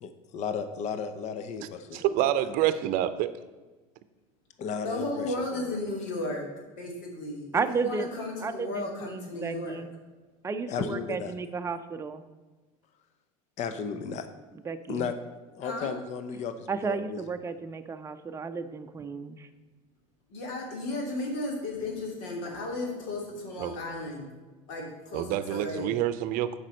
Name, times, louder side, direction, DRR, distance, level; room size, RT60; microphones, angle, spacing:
voice 1, 0.0-2.0 4.6-5.7 10.7-11.3 13.6-14.3 14.9-15.1 15.6-17.2, left 6 dB, 40° left, 9 dB, 0.7 m, -34 dB
voice 2, 1.9-3.3 23.6-23.7 25.1-26.6, right 12 dB, 55° right, 13 dB, 0.6 m, -27 dB
voice 3, 4.8-6.4 6.8-9.8 15.6-15.9 20.3-24.3 24.7-25.9, left 2 dB, 70° left, 0 dB, 2.6 m, -34 dB
voice 4, 7.5-8.1 8.4-9.9 10.4-12.2 14.5-15.1 16.7-19.5, right 4 dB, 15° right, 7 dB, 0.6 m, -33 dB
7.3 x 5.2 x 6.4 m, 1.3 s
supercardioid pair, 120°, 17 cm